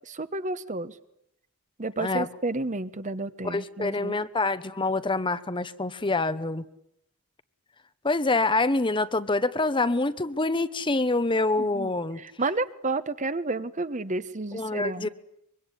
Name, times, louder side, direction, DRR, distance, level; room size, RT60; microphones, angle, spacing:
voice 1, 0.1-0.9 1.8-4.2 11.6-11.9 12.2-15.1, right 2 dB, 35° right, 13 dB, 1.1 m, -31 dB
voice 2, 3.4-6.6 8.0-12.2 14.5-15.1, left 2 dB, 20° left, 13 dB, 1.0 m, -26 dB
24.5 x 23.5 x 10.0 m, 0.78 s
head